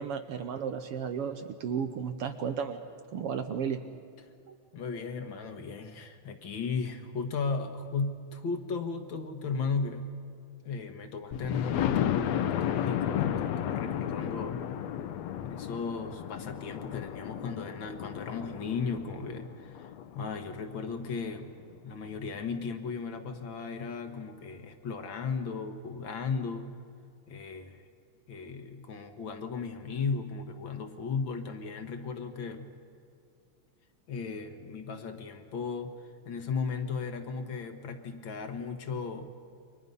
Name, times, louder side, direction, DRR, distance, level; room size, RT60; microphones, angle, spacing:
voice 1, 0.0-2.8 3.1-3.8 4.5-4.6, right 7 dB, 70° right, 8 dB, 1.4 m, -33 dB
voice 2, 4.7-10.1 10.6-14.6 15.4-21.5 21.8-26.7 27.3-27.9 28.3-32.7 34.1-39.3, left 5 dB, 50° left, 6 dB, 1.6 m, -36 dB
Thunder, 11.3-21.0 21.6-21.7 22.1-22.2 22.5-22.6, left 10 dB, 70° left, 1.9 m, -33 dB
29.0 x 24.0 x 5.5 m, 2.3 s
omnidirectional pair, 3.5 m